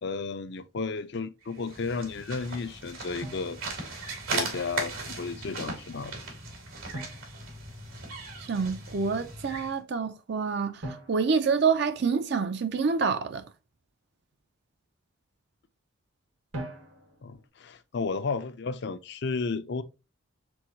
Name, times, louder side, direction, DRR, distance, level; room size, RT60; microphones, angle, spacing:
voice 1, 0.0-4.0 4.3-6.1 17.2-19.8, left 4 dB, 55° left, 0.5 m, -33 dB
sound 1, 1.5-9.8, right 3 dB, 90° right, 2.5 m, -37 dB
Drum, 3.2-4.4 6.9-8.3 10.8-12.5 16.5-17.5, right 1 dB, 70° right, 1.3 m, -43 dB
voice 2, 8.4-13.4, right 5 dB, 50° right, 0.4 m, -27 dB
4.7 x 3.8 x 2.7 m
head